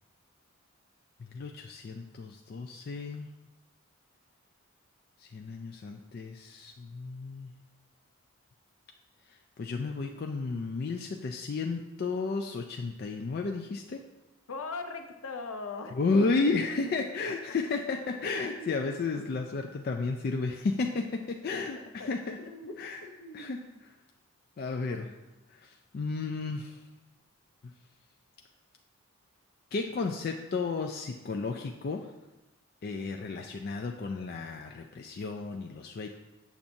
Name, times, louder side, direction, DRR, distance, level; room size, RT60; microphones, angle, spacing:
voice 1, 1.3-3.3 5.3-7.5 9.6-14.0 16.0-21.8 22.1-22.4 22.8-23.0 23.3-23.6 24.6-25.1 25.9-26.8 29.7-32.1 32.8-36.1, left 3 dB, 45° left, 3 dB, 0.3 m, -32 dB
voice 2, 14.5-16.4 16.8-17.3 18.4-18.8 19.1-19.6 21.5-22.1 22.4-23.8 24.8-25.1 30.1-30.3, left 3 dB, 75° left, 6 dB, 0.6 m, -42 dB
7.1 x 7.1 x 2.6 m, 1.0 s
head